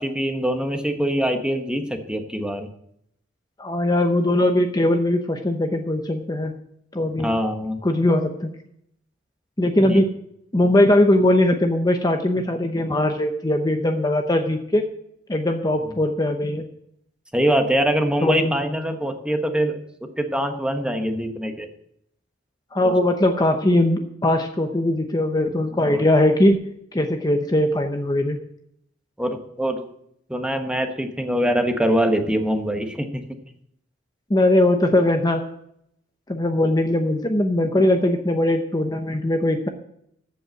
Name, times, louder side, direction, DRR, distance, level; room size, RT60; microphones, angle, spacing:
voice 1, 0.0-2.7 7.2-7.8 9.9-10.0 17.3-21.7 25.9-26.0 29.2-29.9 30.3-33.2, equal, 5° right, 5 dB, 1.2 m, -23 dB
voice 2, 3.6-6.5 6.9-7.3 7.8-8.5 9.6-10.1 10.5-14.9 15.3-16.7 18.2-18.5 22.7-26.6 26.9-28.4 34.3-35.4 36.3-39.7, left 1 dB, 20° left, 5 dB, 0.8 m, -20 dB
14.5 x 5.5 x 7.6 m, 0.72 s
head